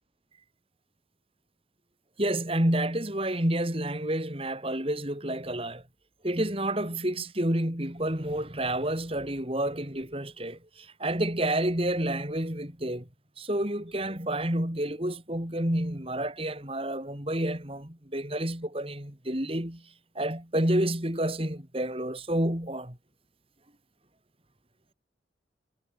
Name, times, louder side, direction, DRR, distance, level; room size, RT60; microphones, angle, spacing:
voice 1, 2.2-5.8 6.2-13.1 13.4-19.8 20.2-23.0, right 1 dB, 30° right, 3.5 m, -29 dB
head